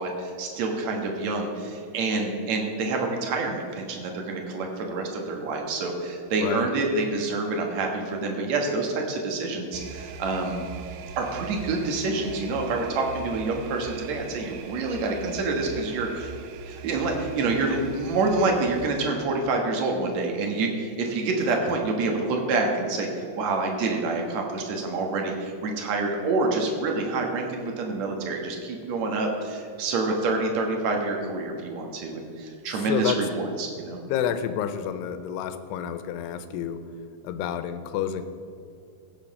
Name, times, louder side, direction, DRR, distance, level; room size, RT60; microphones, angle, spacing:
voice 1, 0.0-10.7 11.2-16.3 16.7-34.0, right 3 dB, 60° right, 2 dB, 2.0 m, -27 dB
sound 1, 9.7-18.9, right 7 dB, 90° right, 2.8 m, -41 dB
voice 2, 32.9-33.2 34.1-36.8 37.2-38.2, left 9 dB, 90° left, 10 dB, 2.8 m, -29 dB
16.0 x 7.2 x 5.3 m, 2.4 s
omnidirectional pair, 4.7 m